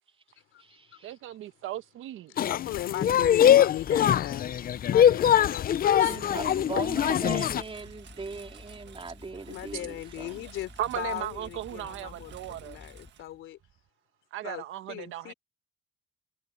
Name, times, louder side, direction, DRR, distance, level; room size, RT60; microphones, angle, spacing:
voice 1, 1.0-2.3 6.0-6.1 10.8-12.8 14.3-15.3, right 13 dB, 85° right, 1.3 m, -36 dB
voice 2, 2.3-4.6 4.8-6.9 9.5-13.6 14.4-15.3, left 14 dB, 90° left, 3.6 m, -38 dB
sound 1, 2.4-7.6, left 10 dB, 50° left, 0.5 m, -22 dB
voice 3, 3.0-3.4 6.0-10.5, right 4 dB, 30° right, 3.7 m, -39 dB
sound 2, 3.9-13.1, left 3 dB, 20° left, 2.1 m, -51 dB
Engine, 5.2-13.9, right 10 dB, 65° right, 1.6 m, -52 dB
cardioid pair, 90°, 20 cm